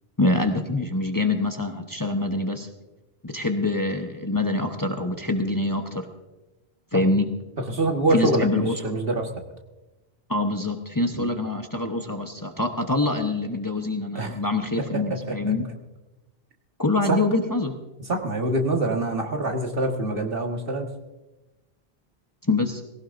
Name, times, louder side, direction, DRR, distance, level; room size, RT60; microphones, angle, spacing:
voice 1, 0.2-2.7 3.2-6.1 6.9-7.3 8.1-8.7 10.3-15.6 16.8-17.7 22.4-22.8, left 2 dB, 20° left, 4 dB, 0.9 m, -25 dB
voice 2, 7.7-9.3 11.1-11.3 14.2-14.3 15.3-15.5 17.1-17.2 18.1-20.9, right 2 dB, 60° right, 2 dB, 1.8 m, -25 dB
19.0 x 17.0 x 2.6 m, 1.0 s
omnidirectional pair, 1.1 m